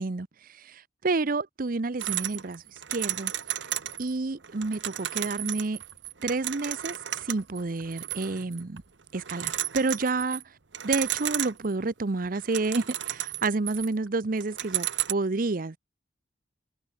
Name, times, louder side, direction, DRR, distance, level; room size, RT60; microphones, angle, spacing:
voice 1, 0.0-3.3 4.0-5.8 6.2-8.8 9.1-10.6 10.8-15.8, right 3 dB, 50° right, 0.7 m, -29 dB
sound 1, 2.0-4.1 4.4-8.8 9.1-10.4 10.7-11.8 12.2-14.1 14.4-15.1, right 13 dB, 85° right, 1.2 m, -33 dB
head